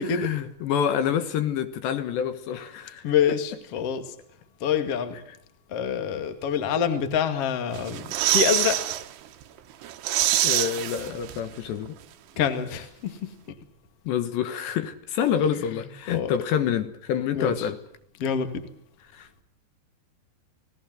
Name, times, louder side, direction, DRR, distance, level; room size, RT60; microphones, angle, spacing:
voice 1, 0.0-3.1 6.1-6.2 10.4-12.0 14.1-17.8 19.1-19.3, left 8 dB, 70° left, 3.5 m, -27 dB
voice 2, 3.0-4.1 4.6-5.2 5.7-8.8 12.4-13.3 16.1-16.3 17.3-17.7 18.2-18.5, left 7 dB, 45° left, 2.4 m, -26 dB
sound 1, 7.7-9.0 9.4-9.5 9.8-11.6 11.8-11.9, right 14 dB, 70° right, 3.0 m, -25 dB
29.5 x 18.5 x 7.8 m
omnidirectional pair, 5.4 m